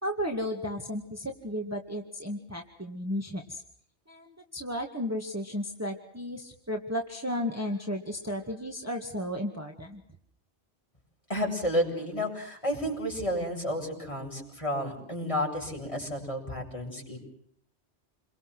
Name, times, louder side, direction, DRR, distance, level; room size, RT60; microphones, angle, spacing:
voice 1, 0.0-3.6 4.1-10.0, equal, 15° right, 2 dB, 2.1 m, -34 dB
voice 2, 11.3-17.2, equal, 30° left, -1 dB, 7.7 m, -31 dB
29.0 x 23.5 x 6.3 m, 0.66 s
omnidirectional pair, 1.1 m